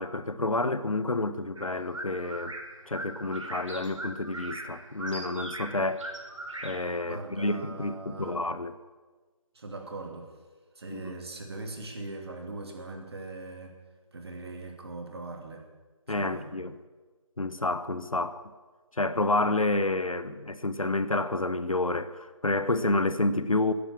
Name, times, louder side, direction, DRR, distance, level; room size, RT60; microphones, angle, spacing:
voice 1, 0.0-2.6 2.9-6.1 6.6-8.7 10.9-11.1 16.1-16.8 17.4-18.4 19.0-23.7, left 2 dB, 90° left, 1.1 m, -29 dB
sound 1, 1.6-7.0, right 1 dB, 65° right, 3.4 m, -40 dB
voice 2, 7.0-8.4 9.5-10.3 10.7-13.7 14.1-15.7 16.1-16.5, right 2 dB, 50° right, 2.7 m, -40 dB
17.0 x 10.0 x 7.3 m
figure-of-eight pair, 160°, 17 cm